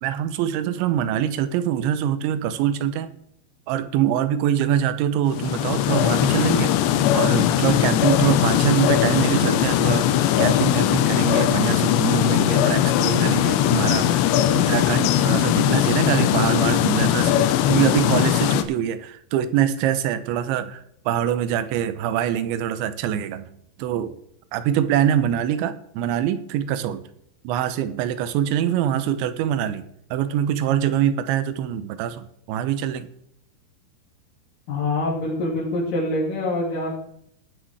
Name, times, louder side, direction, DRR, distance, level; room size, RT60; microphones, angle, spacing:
voice 1, 0.0-3.1 3.7-6.7 7.1-23.5 23.8-24.2 24.5-27.1 27.4-33.1, right 10 dB, 85° right, 12 dB, 3.1 m, -24 dB
sound 1, 5.3-18.6, left 11 dB, 85° left, 3.0 m, -20 dB
voice 2, 34.7-37.0, left 2 dB, 50° left, -2 dB, 3.9 m, -25 dB
18.0 x 6.3 x 4.8 m, 0.71 s
omnidirectional pair, 5.3 m